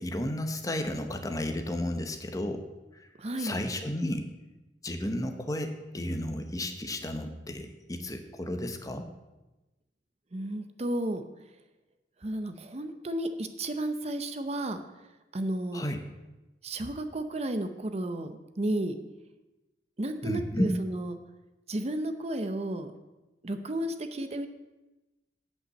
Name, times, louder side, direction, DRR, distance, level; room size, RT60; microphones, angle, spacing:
voice 1, 0.0-2.7 3.0-3.1 3.4-4.3 4.8-9.1 15.7-16.0 20.2-20.7, left 1 dB, 20° left, 6 dB, 0.8 m, -32 dB
voice 2, 3.2-3.5 10.3-11.2 12.2-14.8 15.3-15.8 16.6-18.9 20.0-21.2 21.7-22.9 23.4-24.5, right 1 dB, 35° right, 9 dB, 0.7 m, -32 dB
9.1 x 5.5 x 7.7 m, 1.1 s
head